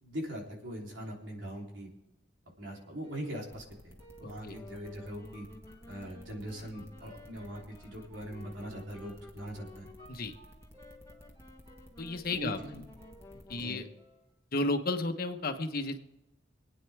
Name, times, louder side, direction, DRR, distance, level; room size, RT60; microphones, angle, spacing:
voice 1, 0.0-1.9 2.6-5.5 5.9-9.9 12.4-12.8 13.6-13.8, equal, 85° right, -1 dB, 3.5 m, -41 dB
sound 1, 2.7-14.3, right 1 dB, 30° right, 4.9 m, -61 dB
sound 2, 3.5-13.6, equal, 15° right, 1.8 m, -54 dB
voice 2, 4.2-4.6 10.1-10.3 12.0-12.6 13.5-13.9 14.5-16.0, left 2 dB, 55° left, 6 dB, 1.2 m, -33 dB
Wind instrument woodwind instrument, 4.5-14.1, left 2 dB, 15° left, 1.2 m, -54 dB
25.5 x 9.2 x 3.5 m, 0.97 s
head